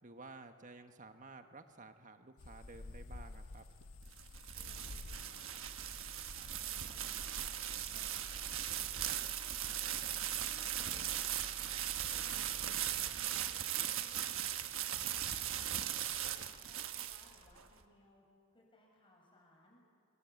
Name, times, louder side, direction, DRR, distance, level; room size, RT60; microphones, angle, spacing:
voice 1, 0.0-3.6, right 3 dB, 35° right, 7 dB, 1.4 m, -53 dB
sound 1, 2.4-10.0, left 2 dB, 80° left, 0.9 m, -52 dB
sound 2, 3.8-17.6, right 11 dB, 70° right, 1.3 m, -39 dB
voice 2, 4.5-5.6 6.4-8.6 9.0-11.8 12.1-14.4 14.7-18.2 18.5-19.8, left 1 dB, 25° left, -1 dB, 7.2 m, -64 dB
sound 3, 5.7-13.0, equal, ahead, 2.0 m, -54 dB
26.5 x 23.0 x 8.6 m, 2.3 s
head